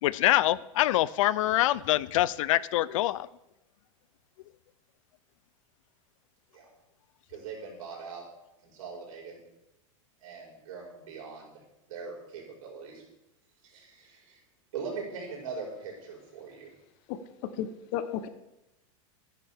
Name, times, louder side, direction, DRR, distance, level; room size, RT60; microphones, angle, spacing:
voice 1, 0.0-3.3, left 15 dB, 70° left, 20 dB, 0.4 m, -25 dB
voice 2, 7.3-8.2 8.6-9.4 10.2-11.6 11.9-13.0 13.6-14.4 14.7-16.7, right 5 dB, 80° right, -2 dB, 5.1 m, -41 dB
voice 3, 17.1-18.3, left 10 dB, 45° left, 12 dB, 0.9 m, -34 dB
15.0 x 10.5 x 3.5 m, 0.91 s
supercardioid pair, 150°, 17 cm